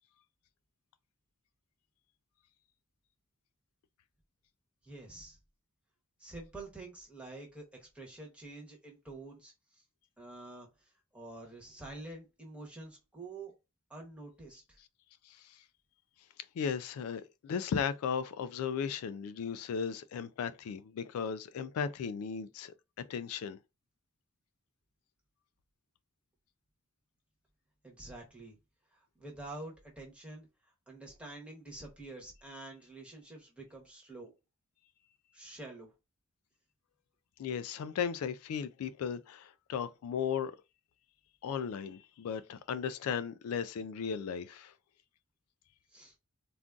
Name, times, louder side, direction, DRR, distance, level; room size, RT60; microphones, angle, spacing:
voice 1, 4.8-5.4 6.2-9.5 10.2-10.7 11.1-13.5 13.9-14.8 27.8-28.6 29.2-30.5 30.9-34.3 35.3-35.9 45.9-46.1, right 2 dB, 5° right, 1.0 m, -47 dB
voice 2, 16.6-22.7 23.1-23.6 37.4-40.5 41.4-44.7, left 7 dB, 75° left, 0.3 m, -36 dB
3.7 x 2.4 x 2.3 m
head